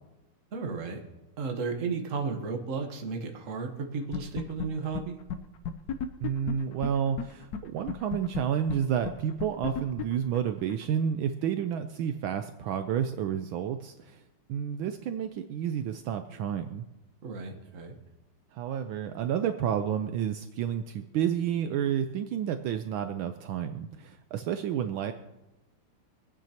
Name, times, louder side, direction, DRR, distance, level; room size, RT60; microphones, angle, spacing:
voice 1, 0.5-1.0 1.4-5.2 17.2-17.9, right 4 dB, 45° right, 4 dB, 1.3 m, -34 dB
sound 1, 4.1-4.7 4.9-5.0 5.3-5.4 5.6-7.2 7.5-7.6 7.9-10.8, left 8 dB, 65° left, 1.0 m, -33 dB
voice 2, 6.2-14.2 14.5-16.8 18.5-25.1, right 9 dB, 75° right, 8 dB, 1.3 m, -30 dB
25.5 x 9.1 x 2.9 m, 1.0 s
omnidirectional pair, 2.4 m